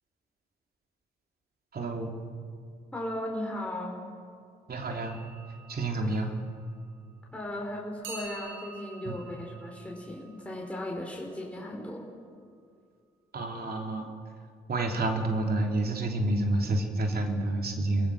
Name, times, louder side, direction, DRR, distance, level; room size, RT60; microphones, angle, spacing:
voice 1, 1.7-2.2 4.7-5.2 5.7-6.3 9.0-9.2 13.3-14.1 14.7-18.1, right 2 dB, 50° right, 2 dB, 3.1 m, -29 dB
voice 2, 2.9-4.0 6.0-6.3 7.3-12.1, left 1 dB, 5° left, -2 dB, 4.5 m, -37 dB
sound 1, 4.9-7.3 8.0-11.9, right 3 dB, 85° right, 7.1 m, -48 dB
29.5 x 15.0 x 6.3 m, 2.2 s
supercardioid pair, 55°, 20 cm